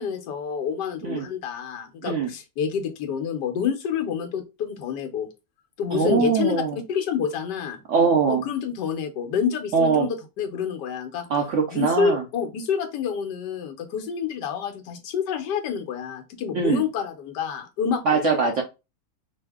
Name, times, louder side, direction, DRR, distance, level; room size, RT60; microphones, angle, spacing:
voice 1, 0.0-5.3 5.8-6.6 6.9-7.8 8.3-11.3 11.7-18.4, left 7 dB, 80° left, 6 dB, 1.4 m, -28 dB
voice 2, 5.9-6.8 7.9-8.4 9.7-10.1 11.3-12.2 16.5-16.8 18.1-18.6, right 5 dB, 70° right, 2 dB, 0.7 m, -22 dB
4.9 x 2.0 x 3.5 m, 0.26 s
omnidirectional pair, 1.9 m